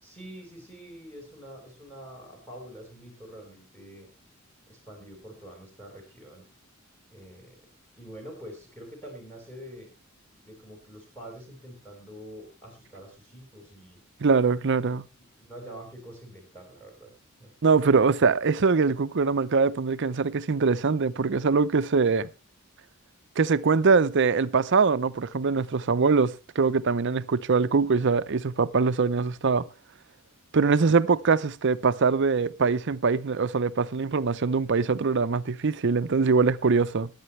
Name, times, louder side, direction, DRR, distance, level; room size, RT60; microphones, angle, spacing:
voice 1, 0.0-4.1 4.7-6.4 7.1-7.6 8.0-9.9 10.4-14.0 14.9-15.0 15.3-17.1 17.4-17.5, equal, 10° left, 4.5 m, -45 dB
voice 2, 14.2-15.0 17.6-22.3 23.4-29.7 30.5-37.1, right 4 dB, 60° right, 0.6 m, -23 dB
21.0 x 8.8 x 3.2 m
head